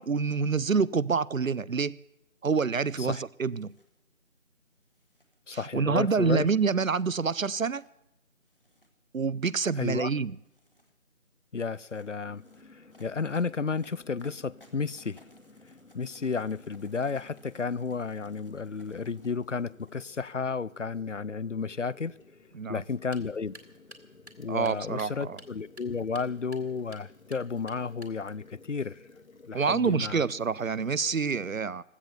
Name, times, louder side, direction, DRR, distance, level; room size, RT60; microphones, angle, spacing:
voice 1, 0.0-2.0 2.4-3.7 5.5-7.8 9.1-10.4 22.5-22.8 24.5-25.4 29.5-31.8, right 5 dB, 75° right, 0.7 m, -27 dB
sound 1, 3.4-3.9 4.8-5.4 6.1-6.8 7.6-7.9 8.5-8.9 9.4-9.9 10.4-11.0 11.7-20.3, left 1 dB, 40° left, 1.7 m, -62 dB
voice 2, 5.5-6.5 9.8-10.1 11.5-12.4 12.7-15.2 15.9-22.1 22.7-23.5 24.4-28.9 29.5-30.3, left 5 dB, 65° left, 0.5 m, -32 dB
sound 2, 12.2-31.2, left 3 dB, 80° left, 1.7 m, -55 dB
sound 3, 22.9-28.4, right 1 dB, 55° right, 2.0 m, -54 dB
16.0 x 13.0 x 6.9 m
figure-of-eight pair, 175°, 41 cm